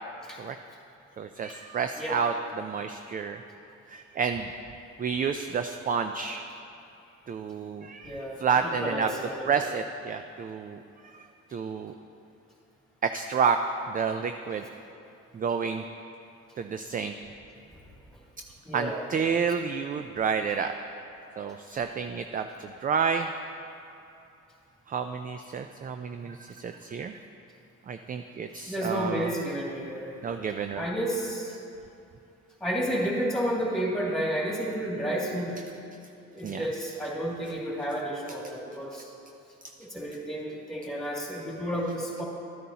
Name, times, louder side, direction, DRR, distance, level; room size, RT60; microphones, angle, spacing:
voice 1, 1.2-3.4 3.9-4.5 5.0-6.5 7.3-9.1 9.5-10.8 11.1-11.9 13.0-14.6 15.3-15.8 16.6-17.1 18.7-20.7 21.4-23.3 24.9-27.2 27.9-29.3 30.2-30.9 36.4-36.7, right 6 dB, 30° right, 7 dB, 0.3 m, -30 dB
voice 2, 8.0-9.6 18.6-19.0 26.1-26.3 28.7-30.2 30.8-31.6 32.6-35.6 36.3-39.1 39.8-42.2, equal, ahead, -5 dB, 2.4 m, -31 dB
12.0 x 9.3 x 2.8 m, 2.7 s
cardioid pair, 90°, 30 cm